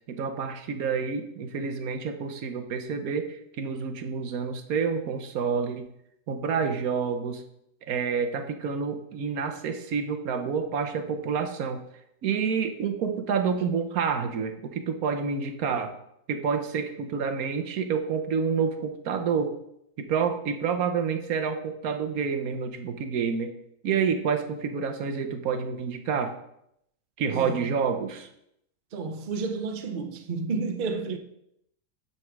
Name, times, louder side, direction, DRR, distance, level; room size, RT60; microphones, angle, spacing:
voice 1, 0.1-5.9 6.3-7.4 7.9-11.8 12.2-15.9 16.3-19.5 20.0-23.5 23.8-26.3 27.2-28.3, right 6 dB, 75° right, 1.3 m, -28 dB
voice 2, 27.3-27.7 28.9-31.2, right 4 dB, 50° right, 0.6 m, -31 dB
8.0 x 4.3 x 5.9 m
omnidirectional pair, 1.6 m